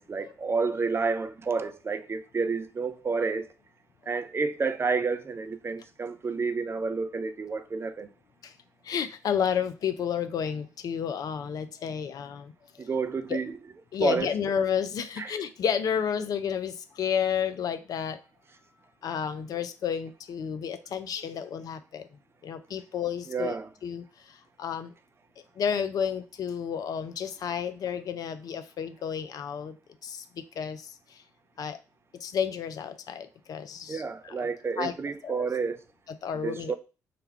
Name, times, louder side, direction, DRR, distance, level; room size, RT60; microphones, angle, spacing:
voice 1, 0.0-3.5 4.1-8.1 12.8-13.5 14.0-14.3 15.2-15.3 23.3-23.6 33.9-35.8 36.4-36.7, right 4 dB, 30° right, 0.4 m, -30 dB
voice 2, 8.8-12.9 13.3-13.4 13.9-18.2 19.0-22.1 22.4-23.5 23.8-24.9 25.6-29.8 30.0-31.2 31.6-31.8 32.1-34.5 34.8-34.9 35.2-35.5 36.1-36.7, left 8 dB, 45° left, 0.4 m, -31 dB
3.3 x 2.2 x 4.3 m
figure-of-eight pair, 40°, 9 cm